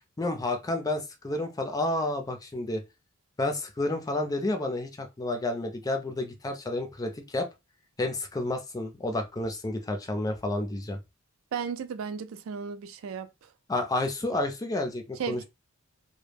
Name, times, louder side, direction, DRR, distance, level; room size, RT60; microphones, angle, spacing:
voice 1, 0.2-2.8 3.4-7.5 8.0-11.0 13.7-15.4, left 2 dB, 15° left, 0.4 m, -30 dB
voice 2, 11.5-13.5 15.2-15.4, right 6 dB, 70° right, 0.3 m, -35 dB
2.1 x 2.0 x 3.2 m
head